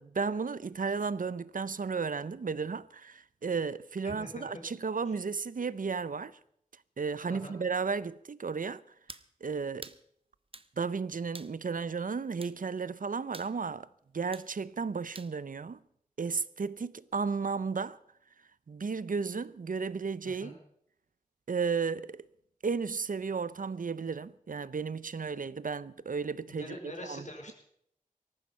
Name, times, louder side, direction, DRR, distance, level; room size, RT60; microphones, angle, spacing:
voice 1, 0.0-6.4 7.0-8.8 9.4-9.9 10.8-13.9 14.1-15.8 16.2-18.0 18.7-20.6 21.5-22.3 22.6-26.8 27.0-27.5, right 5 dB, 70° right, 0.7 m, -34 dB
voice 2, 4.0-4.5 7.3-7.6 20.2-20.5 26.5-27.5, left 1 dB, 55° left, 4.7 m, -44 dB
sound 1, 9.1-9.3 9.8-10.0 10.5-10.7 11.3-11.6 12.4-12.6 13.3-13.5 14.3-14.5 15.2-15.3, right 3 dB, 40° right, 0.9 m, -47 dB
18.5 x 14.0 x 5.6 m
wide cardioid pair, 50°, 14 cm